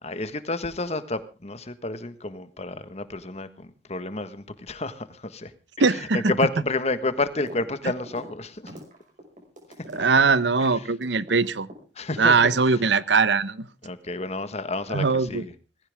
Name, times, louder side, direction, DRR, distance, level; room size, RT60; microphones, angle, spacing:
voice 1, 0.0-5.5 5.8-5.9 6.1-8.7 12.0-12.4 13.8-15.5, left 2 dB, 35° left, 1.4 m, -30 dB
voice 2, 5.8-6.2 9.9-11.7 12.2-13.7 14.9-15.4, right 4 dB, 80° right, 0.9 m, -21 dB
sound 1, 7.4-7.7 7.9-11.8 12.1-13.0, equal, 45° right, 5.8 m, -43 dB
19.5 x 16.0 x 3.5 m
head